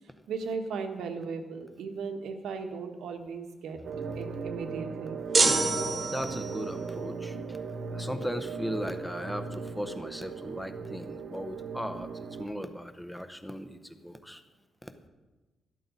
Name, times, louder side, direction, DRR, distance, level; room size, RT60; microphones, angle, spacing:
voice 1, 0.3-3.8 4.1-5.2, right 5 dB, 85° right, 5 dB, 1.5 m, -36 dB
sound 1, 3.8-12.5, right 5 dB, 50° right, 0.7 m, -38 dB
sound 2, 5.3-6.7, right 3 dB, 25° right, 1.2 m, -26 dB
voice 2, 5.7-7.6 7.9-14.4 14.8-14.9, equal, 5° left, 9 dB, 0.7 m, -37 dB
13.0 x 13.0 x 4.1 m, 1.2 s
wide cardioid pair, 180°, 0 cm